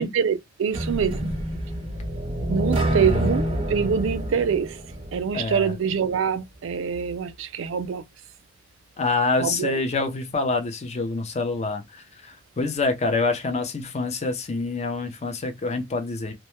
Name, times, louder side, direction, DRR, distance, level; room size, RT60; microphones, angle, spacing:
voice 1, 0.0-1.3 2.5-4.8 5.1-8.0 9.4-9.8, right 6 dB, 75° right, 0.4 m, -25 dB
sound 1, 0.7-5.7, right 1 dB, 25° right, 0.5 m, -27 dB
voice 2, 2.9-3.3 5.3-5.7 9.0-11.8 12.6-16.3, left 3 dB, 35° left, 0.5 m, -26 dB
2.1 x 2.1 x 2.9 m
head